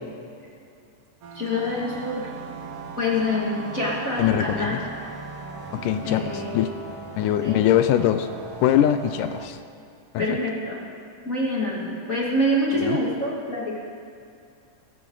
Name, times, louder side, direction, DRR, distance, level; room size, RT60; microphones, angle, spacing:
sound 1, 1.2-9.5, right 4 dB, 60° right, 2.0 m, -38 dB
voice 1, 1.3-2.3 3.0-4.8 6.0-6.8 7.4-7.7 9.2-9.3 10.2-10.8 11.2-13.8, left 1 dB, 30° left, -5 dB, 2.0 m, -26 dB
voice 2, 4.2-4.8 5.7-6.7 7.2-8.3 8.6-9.6 10.1-10.3 12.8-13.0, left 11 dB, 85° left, 10 dB, 2.1 m, -22 dB
21.0 x 15.0 x 3.9 m, 2.5 s
omnidirectional pair, 3.8 m